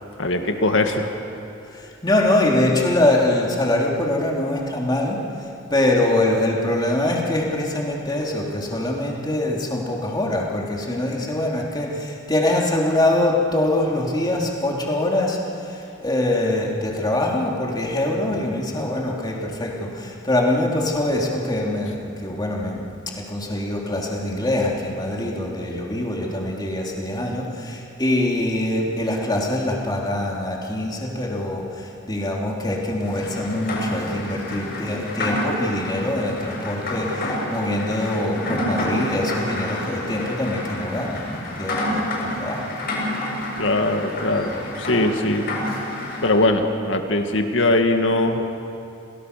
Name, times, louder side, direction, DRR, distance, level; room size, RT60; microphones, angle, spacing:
voice 1, 0.2-1.1 43.6-45.5 46.2-48.4, left 2 dB, 75° left, 5 dB, 2.0 m, -21 dB
voice 2, 1.7-42.7 44.5-44.7, left 1 dB, 20° left, -1 dB, 3.1 m, -24 dB
Rain, 33.0-46.4, left 1 dB, 55° left, 7.6 m, -29 dB
28.5 x 18.5 x 6.8 m, 2.7 s
head